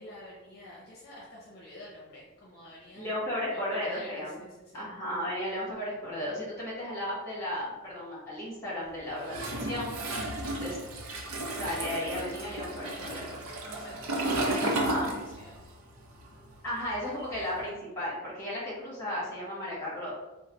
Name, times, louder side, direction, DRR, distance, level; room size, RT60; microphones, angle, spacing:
voice 1, 0.0-3.2 3.5-4.9 10.3-10.7 13.7-15.1 15.4-15.6, left 1 dB, 45° left, -6 dB, 0.7 m, -48 dB
voice 2, 2.9-4.4 4.7-10.3 10.6-10.8 11.6-13.4 14.6-15.1 16.6-20.1, left 1 dB, 15° left, -8 dB, 1.4 m, -35 dB
Toilet flush, 9.3-15.7 16.0-17.6, right 1 dB, 85° right, 0.6 m, -33 dB
3.1 x 2.0 x 3.9 m, 1.1 s
head